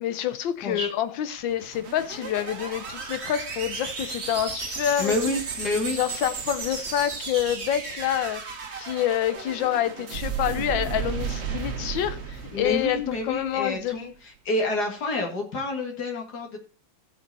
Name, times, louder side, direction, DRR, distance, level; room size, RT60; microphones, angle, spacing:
voice 1, 0.0-5.1 5.9-8.4 8.8-14.1, left 11 dB, 75° left, 1.5 m, -27 dB
sound 1, 1.4-13.7, right 5 dB, 40° right, 1.3 m, -34 dB
voice 2, 5.0-6.0 12.5-16.6, left 2 dB, 55° left, 2.6 m, -28 dB
15.5 x 5.3 x 4.1 m
omnidirectional pair, 2.1 m